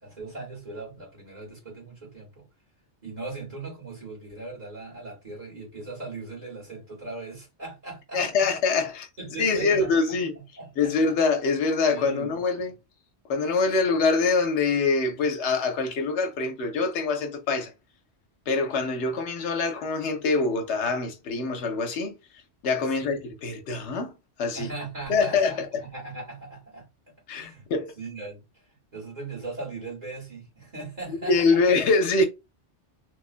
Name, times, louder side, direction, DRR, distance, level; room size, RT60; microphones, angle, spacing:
voice 1, 0.0-2.5 3.0-8.2 9.2-9.9 10.6-10.9 11.9-12.7 19.0-19.1 23.0-23.2 24.5-26.9 27.3-27.6 28.0-28.4 28.9-31.6, right 3 dB, 35° right, 1.5 m, -39 dB
voice 2, 8.1-9.1 9.4-10.3 10.8-12.7 13.3-17.7 18.5-22.1 22.6-24.7 25.1-25.8 27.3-27.9 31.1-32.2, left 4 dB, 75° left, 0.9 m, -24 dB
3.0 x 2.4 x 2.4 m
omnidirectional pair, 1.2 m